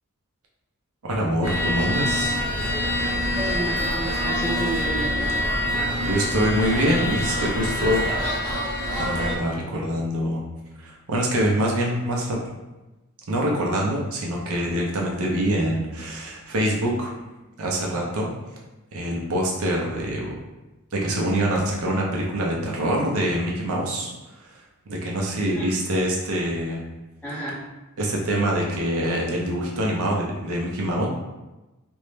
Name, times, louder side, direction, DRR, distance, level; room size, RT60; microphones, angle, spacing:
voice 1, 1.0-2.3 6.0-8.1 9.0-10.4 10.8-12.4 13.3-17.1 17.6-18.3 18.9-20.3 20.9-24.1 24.5-24.6 24.9-26.8 28.0-31.1, equal, 70° right, -1 dB, 0.6 m, -25 dB
sound 1, 1.4-9.3, equal, 20° right, 0.8 m, -25 dB
voice 2, 2.9-5.3 25.5-25.7 27.2-27.6, right 1 dB, 5° left, -11 dB, 0.5 m, -31 dB
2.6 x 2.1 x 3.1 m, 1.1 s
head